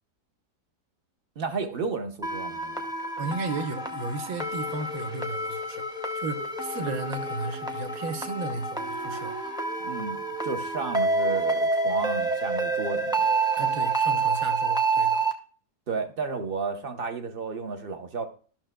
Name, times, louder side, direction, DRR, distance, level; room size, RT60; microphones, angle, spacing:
voice 1, 1.4-2.9 9.8-13.2 15.9-18.3, right 4 dB, 45° right, 0.9 m, -33 dB
sound 1, 2.2-15.3, right 3 dB, 5° right, 0.3 m, -28 dB
voice 2, 3.2-5.8 6.1-9.4 13.6-15.2, right 4 dB, 65° right, 1.3 m, -34 dB
Female singing, 6.4-12.1, right 7 dB, 85° right, 2.1 m, -41 dB
13.5 x 6.0 x 2.2 m
omnidirectional pair, 1.7 m